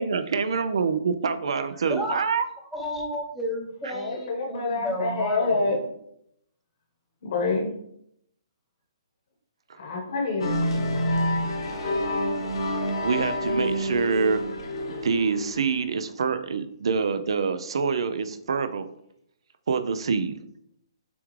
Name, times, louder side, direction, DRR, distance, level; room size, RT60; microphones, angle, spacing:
voice 1, 0.0-2.5 3.8-3.9 9.7-9.8 13.0-14.4 14.9-18.8 19.7-20.4, right 5 dB, 70° right, 10 dB, 0.4 m, -26 dB
voice 2, 1.9-2.3 2.7-5.6, equal, ahead, -2 dB, 0.8 m, -32 dB
voice 3, 3.9-5.8 7.2-7.7 9.8-10.7, left 3 dB, 50° left, 1 dB, 1.2 m, -27 dB
sound 1, 10.4-15.8, left 1 dB, 75° left, 1.3 m, -28 dB
6.9 x 2.4 x 3.2 m, 0.74 s
hypercardioid pair, 150°, 3 cm